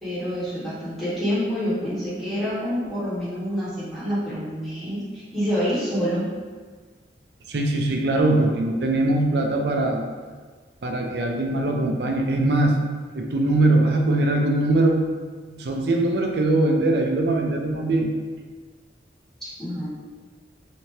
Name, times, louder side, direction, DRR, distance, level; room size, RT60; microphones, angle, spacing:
voice 1, 0.0-6.3 19.4-19.9, equal, ahead, -12 dB, 1.3 m, -27 dB
voice 2, 7.5-10.0 10.8-12.7 13.1-15.0 15.4-18.1, right 2 dB, 70° right, 2 dB, 0.5 m, -21 dB
3.3 x 2.8 x 3.1 m, 1.5 s
head